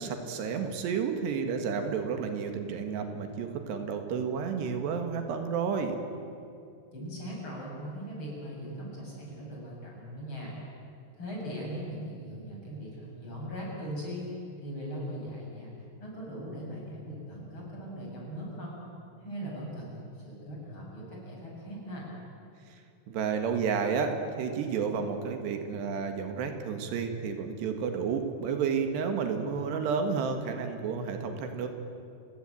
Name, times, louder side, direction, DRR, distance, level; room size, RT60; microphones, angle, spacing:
voice 1, 0.0-6.0 23.1-31.7, right 6 dB, 85° right, 5 dB, 3.9 m, -31 dB
voice 2, 6.9-10.5 11.1-14.3 14.6-15.7 16.0-18.8 19.2-22.1, equal, 30° left, -3 dB, 7.7 m, -39 dB
29.5 x 16.5 x 9.2 m, 2.6 s
omnidirectional pair, 4.7 m